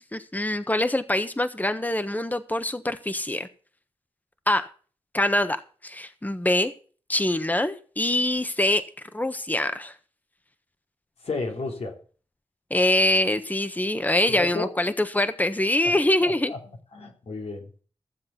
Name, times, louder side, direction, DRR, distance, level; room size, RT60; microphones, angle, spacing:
voice 1, 0.1-3.5 4.5-4.7 5.1-6.7 7.1-8.8 9.1-9.9 12.7-16.5, left 1 dB, 15° left, 1.3 m, -24 dB
voice 2, 11.2-12.0 14.3-14.7 15.8-16.0 16.2-16.6 16.9-17.7, left 3 dB, 85° left, 3.1 m, -32 dB
15.0 x 7.6 x 5.9 m
cardioid pair, 45°, 10 cm